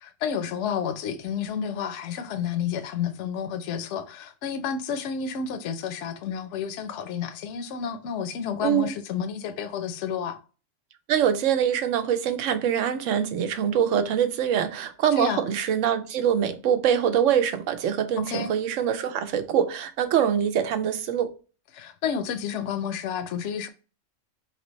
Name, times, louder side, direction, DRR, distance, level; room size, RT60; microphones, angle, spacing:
voice 1, 0.0-10.4 15.2-15.5 18.2-18.5 21.7-23.7, left 7 dB, 75° left, 0.9 m, -30 dB
voice 2, 11.1-21.3, right 9 dB, 85° right, 1.0 m, -24 dB
4.2 x 3.3 x 3.0 m
omnidirectional pair, 1.3 m